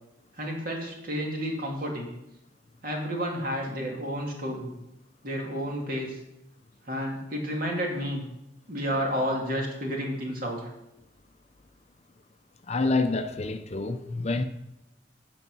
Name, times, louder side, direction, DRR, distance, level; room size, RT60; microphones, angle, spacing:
voice 1, 0.4-2.1 2.8-4.7 5.2-6.2 6.9-8.2 8.7-10.7, equal, 50° right, 2.4 m, -31 dB
voice 2, 12.7-14.4, left 3 dB, 35° left, 0.6 m, -27 dB
9.4 x 6.9 x 6.2 m
head